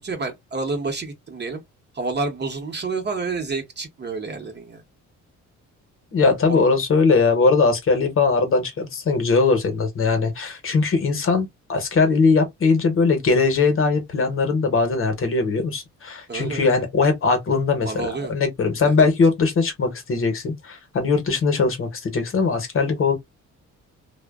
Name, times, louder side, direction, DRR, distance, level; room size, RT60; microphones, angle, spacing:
voice 1, 0.0-1.6 1.9-4.8 6.5-6.7 16.3-16.8 17.8-18.3 18.8-19.1, right 3 dB, 35° right, 0.9 m, -29 dB
voice 2, 6.1-23.2, left 4 dB, 45° left, 0.9 m, -20 dB
2.5 x 2.1 x 2.3 m
cardioid pair, 90°, 30 cm